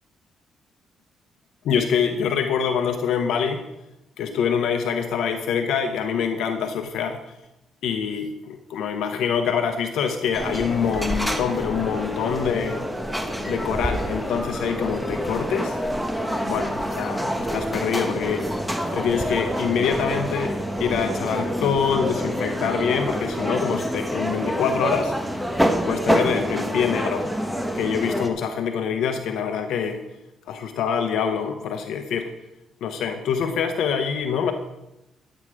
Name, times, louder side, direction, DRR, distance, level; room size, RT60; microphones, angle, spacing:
voice 1, 1.6-3.6 4.2-7.2 7.8-12.9 13.4-15.8 16.4-18.4 18.9-25.1 25.9-27.3 27.7-30.0 30.5-32.3 32.8-34.5, left 7 dB, 80° left, 7 dB, 0.9 m, -25 dB
sound 1, 10.3-28.3, equal, ahead, 1.2 m, -27 dB
11.5 x 8.8 x 4.8 m, 0.91 s
cardioid pair, 90°, 0 cm